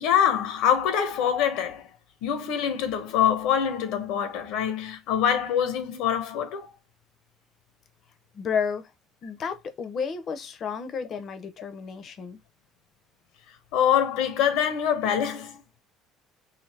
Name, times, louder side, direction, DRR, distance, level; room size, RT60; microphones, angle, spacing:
voice 1, 0.0-1.9 2.2-6.7 13.7-15.6, left 9 dB, 70° left, 0.7 m, -24 dB
voice 2, 8.3-8.9 9.2-12.4, left 6 dB, 35° left, 0.6 m, -31 dB
3.2 x 2.7 x 4.0 m
cardioid pair, 170°, 0 cm